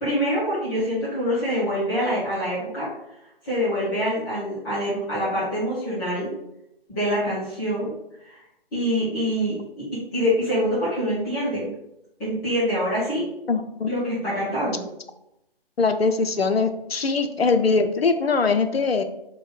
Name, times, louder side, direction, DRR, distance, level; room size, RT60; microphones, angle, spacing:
voice 1, 0.0-2.9 3.4-6.3 6.9-7.9 8.2-8.4 8.7-9.8 10.1-11.7 12.2-13.2 13.9-14.8, equal, 15° left, -12 dB, 1.5 m, -25 dB
voice 2, 13.5-13.9 15.8-19.0, left 4 dB, 85° left, 8 dB, 0.5 m, -22 dB
3.2 x 3.1 x 3.7 m, 0.83 s
figure-of-eight pair, 140°, 30 cm